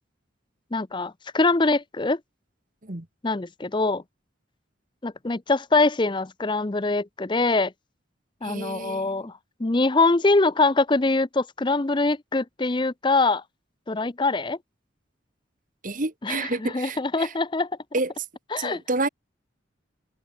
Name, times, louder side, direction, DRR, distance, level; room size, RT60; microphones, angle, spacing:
voice 1, 0.7-2.2 3.2-4.0 5.0-7.7 8.4-9.3 9.6-13.4 13.9-14.6 16.2-17.7 18.5-18.8, left 3 dB, 25° left, 0.6 m, -23 dB
voice 2, 8.4-9.3 15.8-17.3 17.9-18.2 18.6-19.1, right 2 dB, 40° right, 1.5 m, -29 dB
head